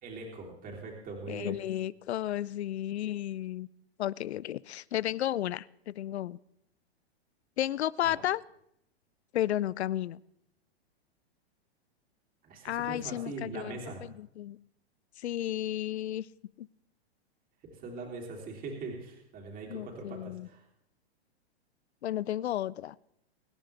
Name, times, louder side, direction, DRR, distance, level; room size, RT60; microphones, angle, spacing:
voice 1, 0.0-1.6 8.0-8.2 12.4-14.0 17.7-20.6, right 3 dB, 25° right, -1 dB, 3.4 m, -41 dB
voice 2, 1.3-3.7 4.0-6.4 7.6-8.4 9.3-10.2 12.6-14.6 15.2-16.3 16.6-16.7 19.7-20.5 22.0-23.0, left 12 dB, 80° left, 22 dB, 0.6 m, -33 dB
24.0 x 10.5 x 3.4 m, 0.76 s
hypercardioid pair, 130°, 32 cm